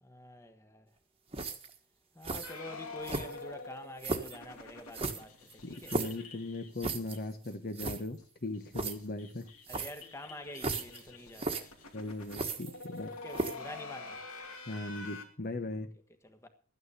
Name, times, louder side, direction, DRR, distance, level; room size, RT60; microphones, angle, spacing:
voice 1, 0.0-0.9 2.1-5.9 9.7-11.7 13.1-14.2 16.2-16.5, left 1 dB, 10° left, 1.3 m, -47 dB
sound 1, 1.3-1.8 2.2-2.5 3.0-3.5 4.0-4.4 4.9-6.2 6.8-7.2 7.5-7.6 7.7-8.0 8.7-8.9 9.7-10.0 10.6-11.0 11.3-11.6 12.3-13.0 13.3-13.7, right 3 dB, 25° right, 1.4 m, -35 dB
sound 2, 2.4-7.5 7.8-7.9 8.2-8.3 8.5-15.2, left 3 dB, 75° left, 2.7 m, -47 dB
voice 2, 5.6-9.5 11.9-13.1 14.7-15.9, left 2 dB, 40° left, 1.1 m, -39 dB
13.0 x 9.5 x 6.8 m
head